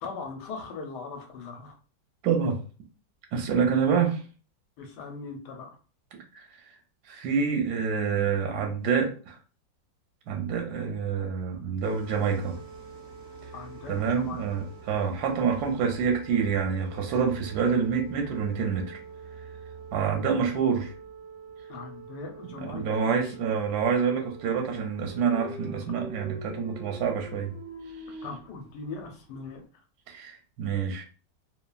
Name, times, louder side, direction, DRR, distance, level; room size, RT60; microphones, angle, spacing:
voice 1, 0.0-1.7 4.8-5.8 13.5-14.6 21.7-23.2 28.2-29.6, left 4 dB, 75° left, 1.2 m, -40 dB
voice 2, 2.2-2.6 3.3-4.2 6.3-6.5 7.1-9.3 10.3-12.6 13.9-19.0 19.9-20.9 22.4-27.5 30.1-31.0, right 6 dB, 70° right, 1.0 m, -27 dB
sound 1, 11.8-29.6, right 3 dB, 5° right, 0.8 m, -45 dB
3.0 x 2.2 x 2.3 m
omnidirectional pair, 2.0 m